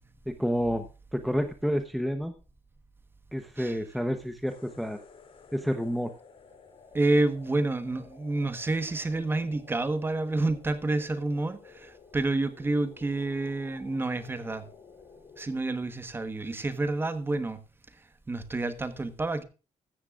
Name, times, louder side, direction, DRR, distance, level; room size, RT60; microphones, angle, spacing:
voice 1, 0.3-0.9 1.1-2.3 3.3-5.0 5.5-6.1, equal, ahead, 0.9 m, -29 dB
sound 1, 4.5-15.6, left 5 dB, 45° left, 2.9 m, -53 dB
voice 2, 6.9-14.7 15.4-17.6 18.3-19.4, right 2 dB, 15° right, 1.2 m, -29 dB
14.5 x 13.5 x 2.4 m
wide cardioid pair, 180°, 12 cm